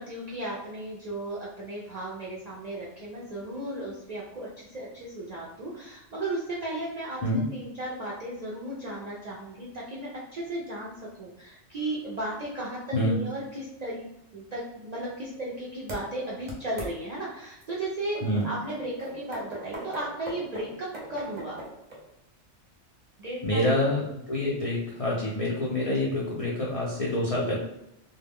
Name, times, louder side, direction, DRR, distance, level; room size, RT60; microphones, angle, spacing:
voice 1, 0.0-7.2 7.5-14.0 14.3-21.6 23.2-23.7, right 1 dB, 65° right, -5 dB, 0.4 m, -35 dB
sound 1, 15.9-16.0 16.5-16.9 17.6-17.7 18.4-22.0, right 1 dB, 40° right, 0.7 m, -39 dB
voice 2, 23.4-27.6, left 1 dB, 65° left, -4 dB, 0.3 m, -27 dB
2.1 x 2.1 x 3.4 m, 0.83 s
omnidirectional pair, 1.2 m